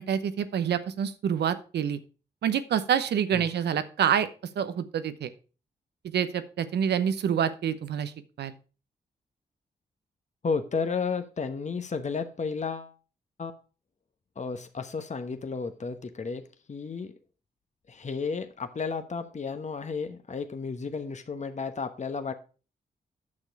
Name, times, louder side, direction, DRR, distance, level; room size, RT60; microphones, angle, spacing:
voice 1, 0.0-2.0 2.4-4.3 4.6-5.3 6.0-8.5, right 8 dB, 80° right, 12 dB, 0.8 m, -27 dB
voice 2, 10.4-12.9 13.4-13.5 14.4-17.1 17.9-22.3, left 5 dB, 45° left, 8 dB, 1.1 m, -33 dB
8.7 x 6.6 x 4.7 m, 0.35 s
supercardioid pair, 50°, 17 cm